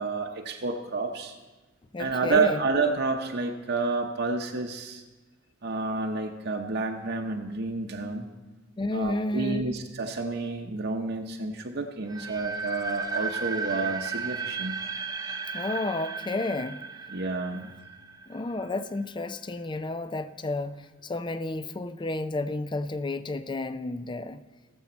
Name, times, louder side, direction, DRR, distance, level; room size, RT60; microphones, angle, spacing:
voice 1, 0.0-1.3 2.0-5.0 5.6-8.3 8.9-14.8 17.1-17.7, right 3 dB, 60° right, 1 dB, 0.8 m, -29 dB
voice 2, 1.9-2.6 8.8-9.7 15.5-16.8 17.5-17.7 18.3-20.8 21.0-24.4, left 2 dB, 25° left, 12 dB, 0.4 m, -31 dB
sound 1, 12.1-19.0, right 5 dB, 20° right, 0.7 m, -35 dB
18.5 x 7.2 x 4.4 m, 1.2 s
head